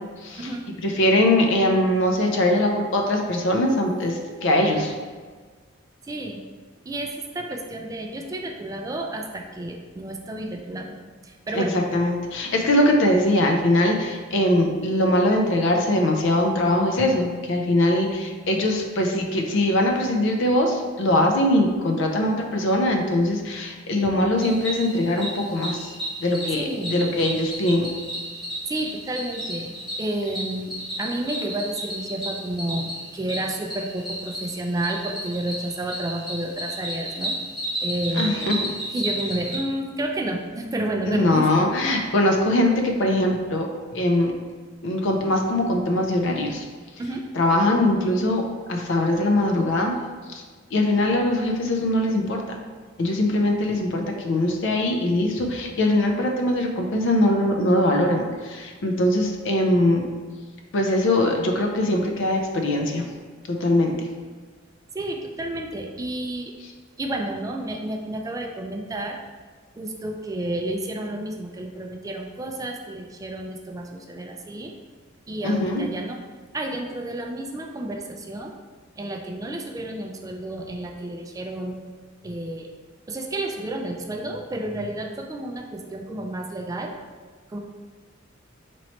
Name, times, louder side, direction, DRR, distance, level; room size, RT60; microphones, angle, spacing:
voice 1, 0.8-4.9 11.5-25.9 26.2-27.9 38.1-38.6 41.1-43.7 43.9-44.3 44.8-46.6 47.3-48.4 48.7-49.9 50.3-50.4 50.7-52.6 53.0-60.1 60.7-63.0 63.5-64.1 75.4-75.8, left 1 dB, 65° left, 3 dB, 0.5 m, -22 dB
voice 2, 4.1-4.5 6.1-6.4 6.9-11.0 11.2-11.8 26.6-27.0 28.7-29.7 30.0-37.3 37.8-38.6 38.9-41.5 47.0-47.2 64.9-66.5 67.0-69.2 69.8-74.7 75.3-76.2 76.5-78.5 79.0-81.8 82.2-82.7 83.1-86.9 87.5-87.6, right 1 dB, 15° right, 2 dB, 0.3 m, -31 dB
Cricket, 24.4-39.6, right 1 dB, ahead, 1.0 m, -33 dB
3.0 x 3.0 x 4.1 m, 1.5 s
head